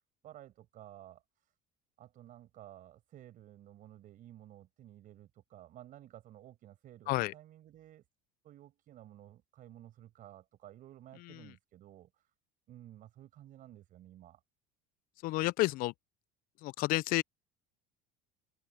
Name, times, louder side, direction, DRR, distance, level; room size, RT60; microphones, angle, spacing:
voice 1, 0.2-1.5 2.0-8.0 8.4-12.3 12.7-14.4, right 13 dB, 45° right, 6.1 m, -54 dB
voice 2, 15.2-15.9 16.6-17.2, left 19 dB, 50° left, 0.4 m, -30 dB
cardioid pair, 135°, 19 cm